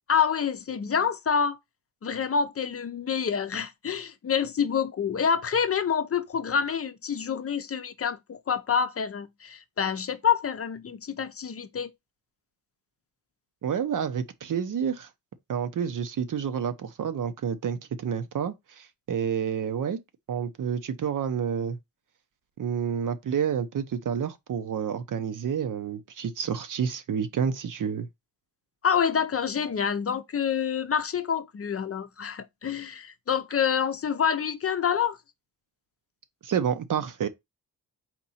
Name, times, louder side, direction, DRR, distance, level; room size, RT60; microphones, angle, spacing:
voice 1, 0.1-1.6 2.0-11.9 28.8-35.2, left 7 dB, 40° left, 0.6 m, -27 dB
voice 2, 13.6-15.1 15.5-20.0 20.3-21.8 22.6-28.1 36.4-37.3, right 7 dB, 60° right, 0.8 m, -29 dB
4.4 x 2.6 x 4.2 m
cardioid pair, 70°, 36 cm